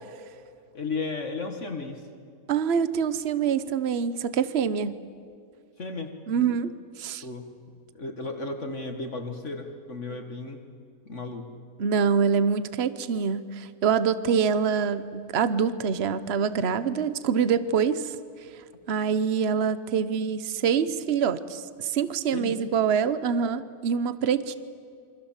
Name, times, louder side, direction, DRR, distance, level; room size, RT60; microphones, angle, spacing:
voice 1, 0.7-2.0 5.8-6.5 7.2-7.5 7.9-10.6 11.1-11.5 22.3-22.6, left 3 dB, 50° left, 5 dB, 2.0 m, -34 dB
voice 2, 2.5-5.0 6.3-7.2 11.8-18.1 18.9-24.6, right 6 dB, 50° right, 14 dB, 1.2 m, -25 dB
28.0 x 25.5 x 7.4 m, 2.3 s
omnidirectional pair, 1.6 m